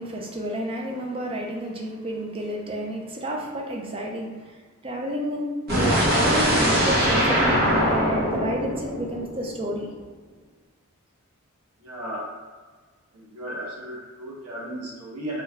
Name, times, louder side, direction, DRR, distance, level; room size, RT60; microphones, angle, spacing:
voice 1, 0.0-9.9, equal, 25° right, -1 dB, 0.4 m, -30 dB
sound 1, 5.7-9.7, equal, 45° right, 0.9 m, -22 dB
voice 2, 11.8-12.3 13.1-15.4, right 1 dB, 90° right, -6 dB, 1.2 m, -35 dB
3.1 x 2.3 x 3.5 m, 1.4 s
head